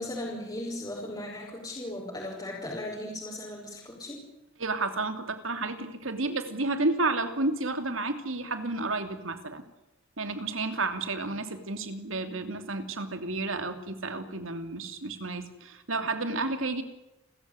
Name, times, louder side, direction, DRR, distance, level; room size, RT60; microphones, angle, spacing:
voice 1, 0.0-4.2, left 1 dB, 20° left, -4 dB, 5.6 m, -37 dB
voice 2, 4.6-9.6 10.2-16.8, right 2 dB, 85° right, 9 dB, 2.9 m, -31 dB
29.5 x 15.0 x 9.8 m, 0.95 s
head